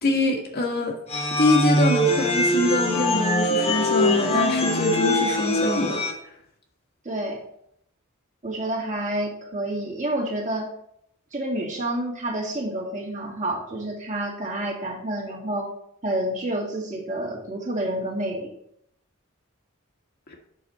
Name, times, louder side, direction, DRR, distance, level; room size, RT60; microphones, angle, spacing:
voice 1, 0.0-0.9 1.4-6.0, left 1 dB, 45° left, 2 dB, 1.7 m, -24 dB
sound 1, 1.1-6.1, left 1 dB, 30° left, 1.2 m, -22 dB
voice 2, 7.0-7.4 8.4-10.7 11.3-15.7 16.0-18.5, right 1 dB, 35° right, -3 dB, 2.1 m, -29 dB
8.3 x 6.3 x 4.2 m, 0.72 s
head